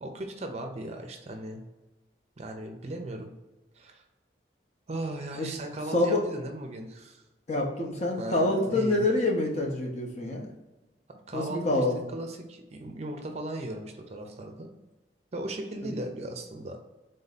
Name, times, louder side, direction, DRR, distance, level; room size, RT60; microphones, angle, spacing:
voice 1, 0.0-1.6 2.4-3.3 3.7-4.0 4.9-7.2 8.2-9.1 11.3-14.7 15.3-16.8, right 1 dB, 40° right, 4 dB, 0.5 m, -37 dB
voice 2, 7.5-10.5 11.3-11.9, left 2 dB, 40° left, 1 dB, 0.7 m, -26 dB
3.7 x 2.7 x 4.0 m, 1.1 s
head